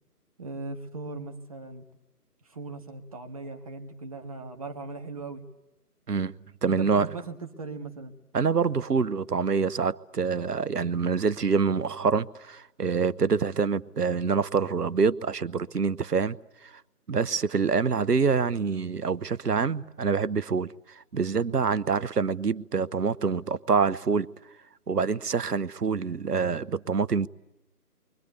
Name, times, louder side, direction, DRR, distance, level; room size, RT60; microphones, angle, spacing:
voice 1, 0.4-1.8 2.5-5.4 6.7-8.1, right 3 dB, 25° right, 1.6 m, -38 dB
voice 2, 6.6-7.1 8.3-16.4 17.1-20.7 21.0-24.3 24.9-27.3, right 5 dB, 80° right, 1.0 m, -26 dB
30.0 x 24.0 x 8.1 m
figure-of-eight pair, 160°, 47 cm